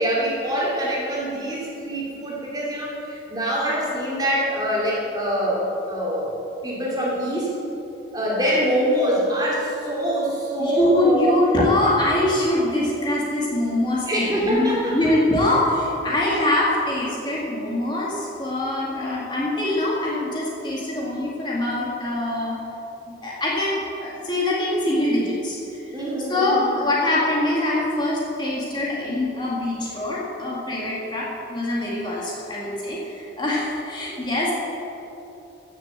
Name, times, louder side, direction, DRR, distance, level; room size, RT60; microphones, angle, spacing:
voice 1, 0.0-6.4 6.6-7.5 8.1-11.4 14.1-15.1 25.9-26.7, equal, 20° right, -5 dB, 2.7 m, -24 dB
voice 2, 10.6-22.6 23.2-25.6 25.8-34.5, left 1 dB, 25° left, -5 dB, 2.0 m, -23 dB
15.0 x 7.0 x 7.3 m, 3.0 s
head